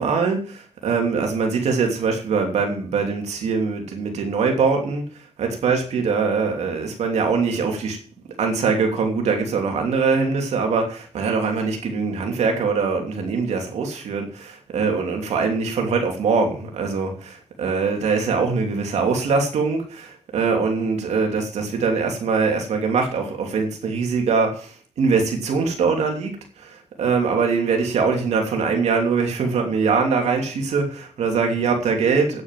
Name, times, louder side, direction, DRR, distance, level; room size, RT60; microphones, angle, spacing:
voice 1, 0.0-5.0 5.4-8.0 8.4-32.4, right 5 dB, 90° right, 2 dB, 3.0 m, -22 dB
9.7 x 9.7 x 7.6 m, 0.42 s
cardioid pair, 70°, 11 cm